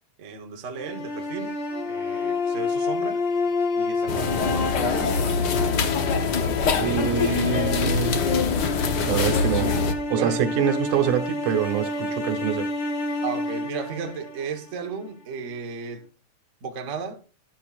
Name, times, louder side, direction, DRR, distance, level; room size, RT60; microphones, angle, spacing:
voice 1, 0.2-1.5 1.8-3.2 3.8-5.6 10.1-10.4 13.2-16.1 16.6-17.2, right 5 dB, 70° right, 0.7 m, -35 dB
sound 1, 0.8-14.9, left 3 dB, 60° left, 1.3 m, -29 dB
sound 2, 4.1-9.9, left 5 dB, 80° left, 0.9 m, -24 dB
voice 2, 6.8-8.2 9.0-9.7 10.1-12.7, right 9 dB, 90° right, 2.6 m, -25 dB
12.0 x 11.5 x 2.4 m
omnidirectional pair, 3.4 m